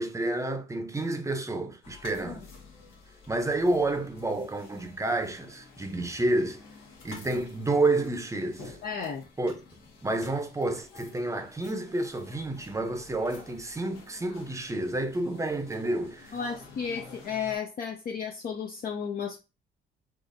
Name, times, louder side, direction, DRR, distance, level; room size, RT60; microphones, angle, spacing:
voice 1, 0.0-2.4 3.3-6.6 7.0-8.8 9.4-9.6 10.0-16.4, right 2 dB, 15° right, 0.6 m, -29 dB
sound 1, 1.8-17.6, left 3 dB, 85° left, 1.1 m, -50 dB
voice 2, 8.8-9.2 16.3-19.4, left 6 dB, 50° left, 0.5 m, -33 dB
4.0 x 2.4 x 2.6 m
cardioid pair, 90°, 20 cm